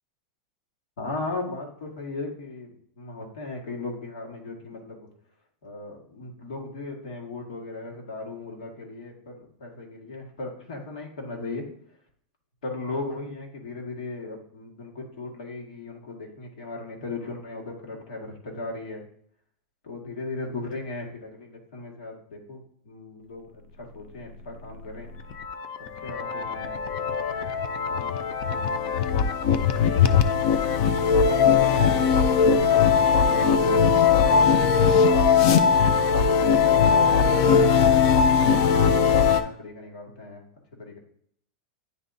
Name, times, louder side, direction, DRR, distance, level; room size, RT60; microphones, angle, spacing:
voice 1, 1.0-5.1 5.6-11.7 12.6-19.0 19.8-25.1 26.0-27.6 27.9-28.1 28.4-30.4 31.3-35.4 36.2-38.9 39.3-40.4 40.8-41.0, left 2 dB, 80° left, 0 dB, 2.0 m, -37 dB
sound 1, 24.9-39.4, left 6 dB, 40° left, 0.5 m, -20 dB
9.7 x 3.7 x 2.7 m, 0.64 s
supercardioid pair, 170°, 4 cm